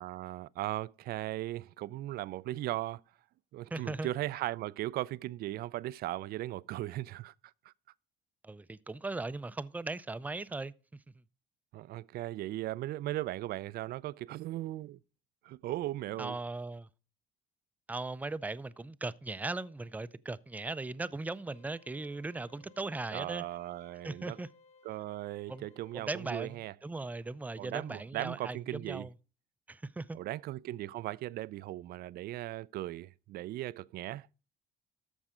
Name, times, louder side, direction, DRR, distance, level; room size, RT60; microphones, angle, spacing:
voice 1, 0.0-3.0 3.5-7.3 11.7-15.0 15.4-16.4 23.1-24.4 24.8-26.7 27.6-29.1 30.1-34.3, right 15 dB, 65° right, 0.4 m, -38 dB
voice 2, 3.7-4.1 8.4-10.7 16.2-16.9 17.9-23.4 24.0-24.5 25.5-25.7 25.9-29.1 29.7-30.2, right 3 dB, 10° right, 0.5 m, -38 dB
sound 1, 21.5-26.6, left 4 dB, 40° left, 2.3 m, -61 dB
13.5 x 5.4 x 4.9 m
cardioid pair, 110°, 17 cm